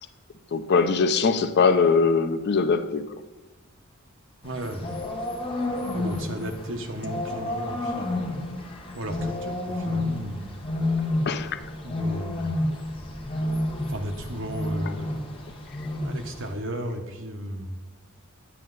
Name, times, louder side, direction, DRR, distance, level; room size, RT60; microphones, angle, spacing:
voice 1, 0.5-3.1 11.3-11.6, left 5 dB, 50° left, 0.5 m, -21 dB
sound 1, 4.4-16.5, left 1 dB, 25° left, 1.1 m, -30 dB
voice 2, 4.4-4.9 5.9-8.3 8.9-10.5 11.8-12.5 13.9-15.2 16.0-17.7, right 1 dB, 65° right, 1.2 m, -34 dB
10.0 x 7.5 x 4.0 m
head